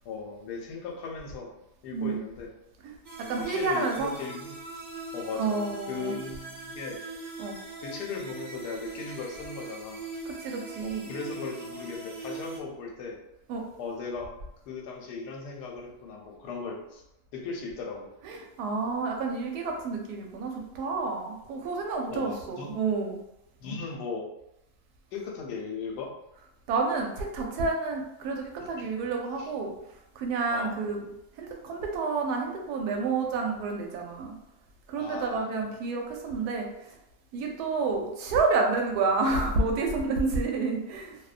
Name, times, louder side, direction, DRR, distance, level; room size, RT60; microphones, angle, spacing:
voice 1, 0.0-1.6 1.8-2.5 3.4-4.6 5.1-5.6 5.9-7.0 7.8-10.0 10.8-13.2 13.8-14.3 14.7-17.0 17.3-18.1 22.1-22.8 23.6-24.3 25.1-26.1 28.6-28.9 29.4-29.5 30.5-30.8 35.0-35.5, left 4 dB, 85° left, 1 dB, 1.2 m, -37 dB
sound 1, 3.0-12.6, right 2 dB, 55° right, 0.7 m, -41 dB
voice 2, 3.2-4.1 5.4-6.1 7.4-7.6 10.3-11.1 13.5-13.7 18.2-23.2 26.7-29.7 30.2-31.0 31.4-34.4 34.9-36.9 37.3-41.2, right 4 dB, 80° right, 1 dB, 1.1 m, -29 dB
2.7 x 2.1 x 2.4 m, 0.88 s
omnidirectional pair, 1.7 m